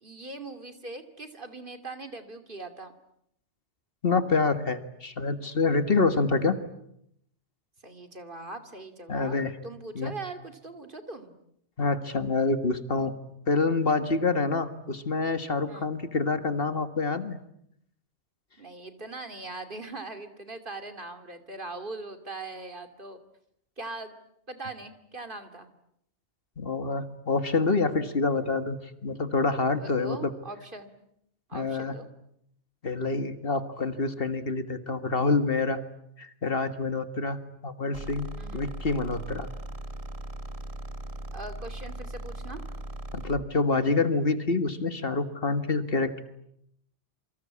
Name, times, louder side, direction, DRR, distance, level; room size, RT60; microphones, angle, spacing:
voice 1, 0.0-2.9 5.9-6.0 7.8-11.4 15.7-15.9 18.6-23.2 23.8-24.1 24.5-25.7 29.8-31.1 31.5-32.1 38.4-38.6 41.3-42.6, right 2 dB, 50° right, 8 dB, 2.7 m, -41 dB
voice 2, 4.0-6.6 9.1-9.5 10.0-10.1 11.8-13.1 13.5-17.4 26.6-28.8 29.0-30.3 31.5-31.9 32.8-35.8 36.2-37.4 37.6-39.5 43.2-46.2, left 3 dB, 55° left, 10 dB, 1.9 m, -27 dB
sound 1, 37.9-43.5, right 1 dB, 30° right, 1.5 m, -38 dB
28.0 x 24.5 x 8.6 m, 0.75 s
omnidirectional pair, 1.2 m